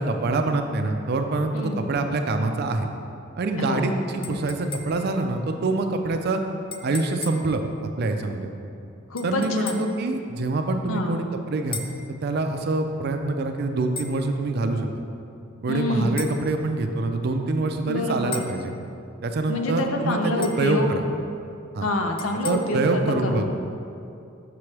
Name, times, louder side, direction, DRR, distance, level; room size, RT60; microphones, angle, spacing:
voice 1, 0.0-2.9 3.4-6.4 6.8-7.6 8.0-8.5 9.2-11.8 12.1-15.0 15.6-18.7 19.2-21.0 21.7-21.9 22.4-23.4, right 2 dB, 50° right, 5 dB, 0.4 m, -25 dB
voice 2, 1.5-1.9 3.6-3.9 4.2-4.4 9.1-9.8 10.9-11.1 15.7-16.3 17.9-18.5 19.5-21.0 21.8-23.4, left 2 dB, 90° left, 4 dB, 0.6 m, -27 dB
sound 1, 4.2-5.2 6.7-7.5 9.2-10.0 11.7-12.1 14.0-14.2 16.2-16.4 18.3-18.6 20.4-20.7 22.2-22.5, left 4 dB, 25° left, 0.3 m, -37 dB
6.0 x 5.9 x 3.2 m, 2.5 s
head